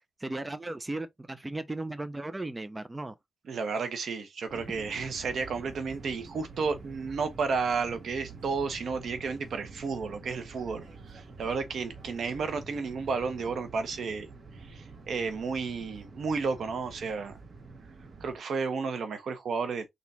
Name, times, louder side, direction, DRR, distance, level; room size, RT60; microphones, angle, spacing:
voice 1, 0.2-3.1, right 2 dB, 20° right, 0.7 m, -36 dB
voice 2, 3.5-14.3 14.7-17.4 18.2-19.9, right 5 dB, 80° right, 1.3 m, -32 dB
sound 1, 4.5-18.4, right 4 dB, 60° right, 1.8 m, -47 dB
4.1 x 3.0 x 4.2 m
cardioid pair, 90°, 0 cm